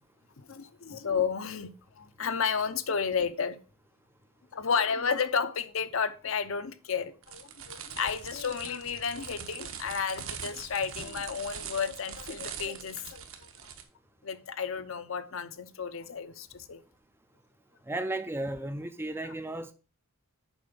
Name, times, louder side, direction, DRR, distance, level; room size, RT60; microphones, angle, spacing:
voice 1, 0.4-3.6 4.5-13.5 14.2-16.8, left 6 dB, 65° left, 0.7 m, -32 dB
sound 1, 7.2-13.8, right 7 dB, 65° right, 1.0 m, -42 dB
voice 2, 17.9-19.7, right 2 dB, 10° right, 0.4 m, -34 dB
7.2 x 4.9 x 5.1 m
head